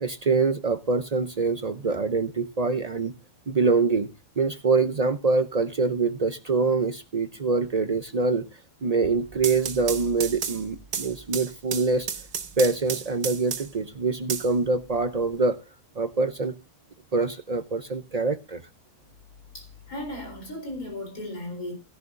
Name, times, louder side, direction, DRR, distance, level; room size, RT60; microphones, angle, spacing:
voice 1, 0.0-3.1 3.5-4.1 4.4-8.4 8.8-12.1 12.6-15.6 16.0-16.5 17.1-18.6, right 4 dB, 60° right, 0.4 m, -25 dB
sound 1, 9.2-13.9 14.3-15.3, right 7 dB, 90° right, 1.7 m, -33 dB
voice 2, 19.5-21.8, left 1 dB, 65° left, 4.5 m, -36 dB
16.5 x 10.5 x 2.5 m
omnidirectional pair, 1.6 m